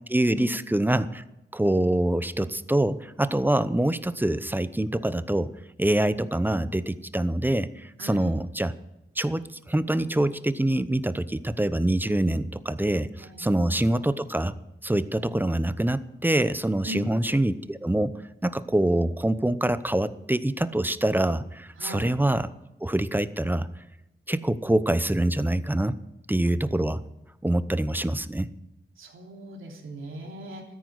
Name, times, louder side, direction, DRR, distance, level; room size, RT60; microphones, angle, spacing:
voice 1, 0.1-1.2 1.5-5.5 5.8-8.7 9.2-14.5 14.8-18.1 18.4-22.5 22.8-23.7 24.3-26.0 26.3-27.0 27.4-28.5, right 1 dB, 10° right, 14 dB, 0.8 m, -25 dB
voice 2, 8.0-8.4 13.2-13.4 16.8-17.1 21.8-22.1 29.0-30.6, equal, 85° right, 1 dB, 3.3 m, -39 dB
13.5 x 10.0 x 8.0 m, 0.89 s
wide cardioid pair, 90°, 20 cm